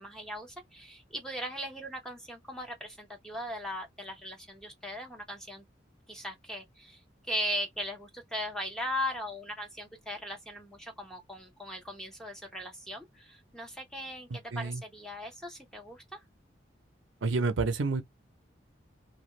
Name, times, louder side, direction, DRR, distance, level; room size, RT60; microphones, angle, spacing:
voice 1, 0.0-5.6 6.1-7.0 7.3-16.2, equal, 5° left, 0.7 m, -38 dB
voice 2, 14.3-14.8 17.2-18.0, right 3 dB, 75° right, 0.6 m, -29 dB
2.5 x 2.2 x 3.1 m
head